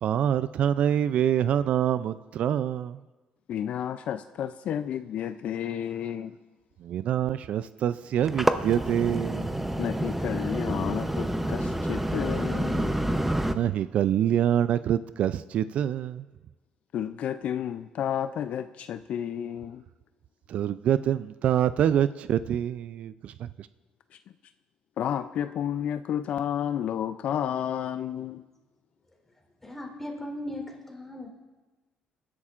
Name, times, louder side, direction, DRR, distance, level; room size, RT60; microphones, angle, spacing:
voice 1, 0.0-3.0 6.8-9.6 13.4-16.3 20.5-23.7, right 10 dB, 65° right, 14 dB, 0.3 m, -26 dB
voice 2, 3.5-6.4 9.8-13.0 16.9-19.8 25.0-28.4, left 9 dB, 65° left, 11 dB, 0.4 m, -31 dB
sound 1, 8.1-13.5, right 1 dB, 10° right, 0.7 m, -28 dB
voice 3, 29.6-31.3, left 1 dB, 10° left, 0 dB, 3.6 m, -37 dB
25.0 x 11.0 x 2.5 m, 1.2 s
cardioid pair, 90°, 2 cm